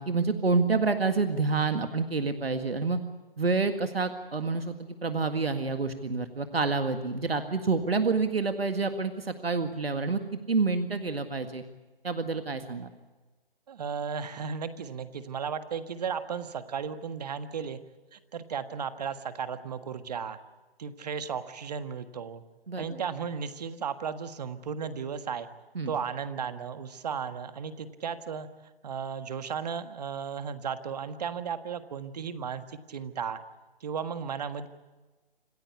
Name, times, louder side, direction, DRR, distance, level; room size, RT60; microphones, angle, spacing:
voice 1, 0.0-3.0 3.4-11.6 12.0-12.9 22.7-23.0 25.8-25.9, right 4 dB, 85° right, 8 dB, 1.9 m, -28 dB
voice 2, 13.7-17.8 18.1-20.4 20.8-22.4 22.8-25.5 25.9-28.5 28.8-33.4 33.8-34.7, right 6 dB, 45° right, 11 dB, 1.6 m, -35 dB
27.0 x 15.0 x 8.4 m, 1.3 s
figure-of-eight pair, 150°, 29 cm